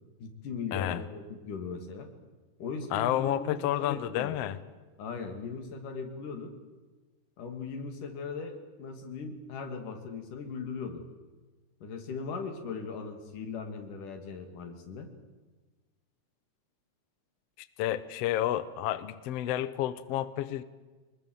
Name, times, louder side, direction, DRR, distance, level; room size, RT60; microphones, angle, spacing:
voice 1, 0.2-2.1 2.6-4.4 5.0-6.5 7.4-11.1 11.8-15.1, left 5 dB, 90° left, 5 dB, 3.9 m, -39 dB
voice 2, 0.7-1.0 2.9-4.6 17.6-20.6, left 12 dB, 65° left, 14 dB, 1.7 m, -30 dB
25.0 x 20.5 x 7.8 m, 1.3 s
omnidirectional pair, 3.6 m